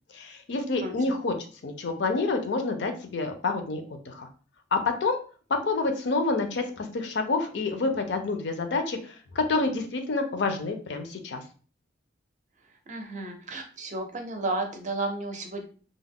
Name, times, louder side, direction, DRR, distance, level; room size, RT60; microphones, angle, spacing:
voice 1, 0.1-1.4 1.6-4.3 4.7-5.2 5.5-11.4, left 3 dB, 65° left, 6 dB, 0.5 m, -28 dB
voice 2, 12.9-15.7, right 2 dB, 40° right, 4 dB, 0.5 m, -32 dB
2.3 x 2.0 x 3.5 m, 0.39 s
head